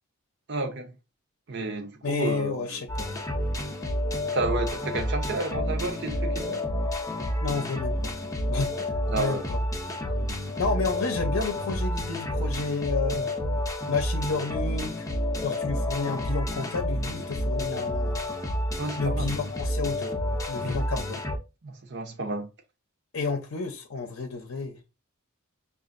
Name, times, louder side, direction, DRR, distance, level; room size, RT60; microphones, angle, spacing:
voice 1, 0.5-0.9 1.5-2.8 4.3-6.6 9.1-9.5 18.8-19.4 20.6-20.8 21.6-22.5, right 3 dB, 50° right, 0.7 m, -31 dB
voice 2, 2.0-3.2 7.4-8.1 8.5-9.6 10.6-13.3 13.9-15.1 15.4-18.2 19.0-20.1 20.5-21.2 23.1-24.8, left 4 dB, 70° left, 0.6 m, -31 dB
sound 1, 2.9-21.4, left 1 dB, 15° left, 0.5 m, -29 dB
5.9 x 2.4 x 2.5 m
head